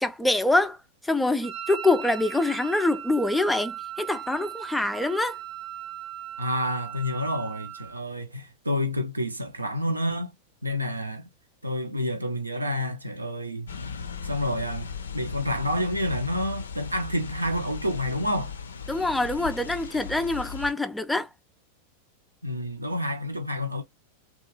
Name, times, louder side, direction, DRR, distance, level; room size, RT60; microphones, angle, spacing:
voice 1, 0.0-0.8 1.0-5.4 18.9-21.3, left 2 dB, 5° left, 0.3 m, -25 dB
Wind instrument woodwind instrument, 1.4-8.0, right 10 dB, 40° right, 0.7 m, -38 dB
voice 2, 6.4-10.3 10.6-11.3 11.6-13.7 14.2-18.5 22.4-23.8, left 1 dB, 85° right, 0.6 m, -29 dB
sound 1, 13.7-20.7, left 6 dB, 70° left, 0.4 m, -37 dB
2.9 x 2.3 x 2.9 m
figure-of-eight pair, 90°, 0 cm